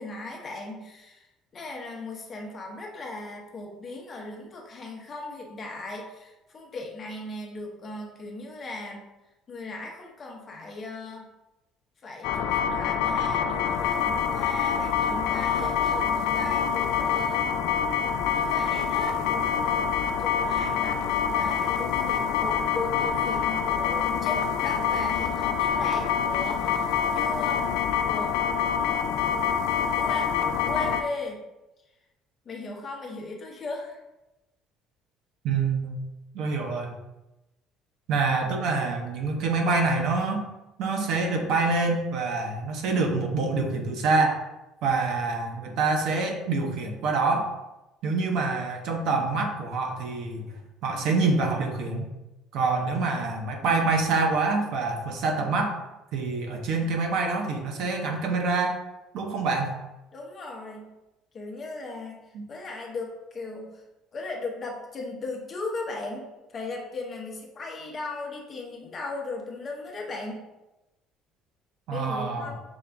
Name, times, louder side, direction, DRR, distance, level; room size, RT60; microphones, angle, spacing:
voice 1, 0.0-9.0 9.5-11.3 12.0-17.5 18.3-19.2 20.2-27.6 28.0-28.4 30.0-30.4 30.6-31.4 32.4-34.0 60.1-60.9 61.3-63.8 64.1-70.5 71.9-72.6, left 2 dB, 25° left, 0 dB, 0.7 m, -37 dB
sound 1, 12.2-31.0, left 7 dB, 90° left, 0.3 m, -26 dB
voice 2, 35.4-36.0 36.3-37.0 38.1-40.4 40.8-44.4 44.8-47.5 48.0-50.5 50.8-52.1 52.5-55.8 56.1-58.8 59.1-59.8 62.3-62.5 71.9-72.6, right 3 dB, 55° right, 3 dB, 0.6 m, -26 dB
5.2 x 2.3 x 3.4 m, 0.99 s
cardioid pair, 175°, 0 cm